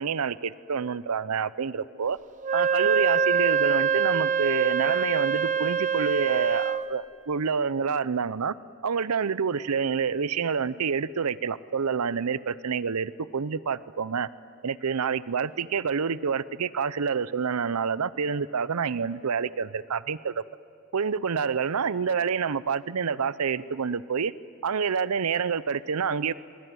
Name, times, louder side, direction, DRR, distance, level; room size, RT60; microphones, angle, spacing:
voice 1, 0.0-2.2 2.5-8.5 8.8-14.3 14.6-20.4 20.9-24.3 24.6-26.3, right 6 dB, 90° right, 17 dB, 0.6 m, -28 dB
Wind instrument woodwind instrument, 2.4-6.9, right 6 dB, 35° right, 0.6 m, -24 dB
25.0 x 23.5 x 9.3 m, 2.4 s
head